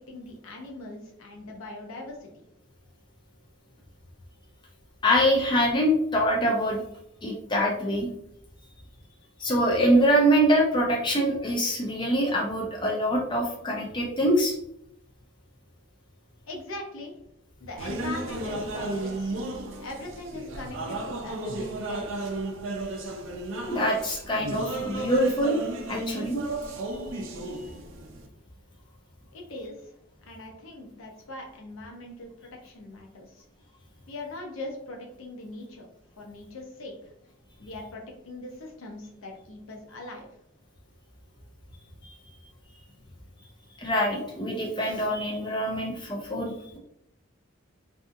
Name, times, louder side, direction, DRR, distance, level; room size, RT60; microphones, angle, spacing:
voice 1, 0.1-2.3 16.5-17.1 17.6-19.3 19.8-22.4 29.3-29.9 30.2-32.3 32.6-33.4 34.1-35.9 36.1-36.9 37.6-40.3, left 2 dB, 75° left, 1 dB, 0.6 m, -41 dB
voice 2, 5.0-6.8 7.2-8.1 9.4-14.5 23.7-25.6 25.9-26.4 43.8-46.8, equal, 20° left, -2 dB, 0.4 m, -24 dB
sound 1, 17.8-28.3, right 2 dB, 65° right, 0.4 m, -34 dB
2.6 x 2.5 x 2.4 m, 0.76 s
head